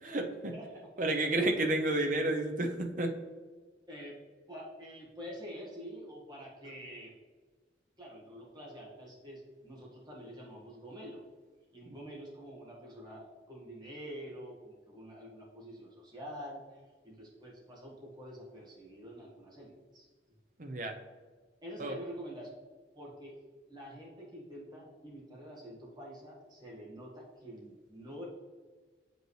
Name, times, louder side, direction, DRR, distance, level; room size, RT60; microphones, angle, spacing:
voice 1, 0.0-0.5 1.0-3.1 20.6-21.0 21.8-21.9, right 2 dB, 45° right, 4 dB, 0.7 m, -31 dB
voice 2, 0.5-0.9 3.9-4.2 4.5-7.1 8.0-11.2 11.7-20.1 21.6-22.5 22.9-23.4 23.7-28.3, equal, 25° right, -5 dB, 1.7 m, -47 dB
7.6 x 5.3 x 3.2 m, 1.4 s
head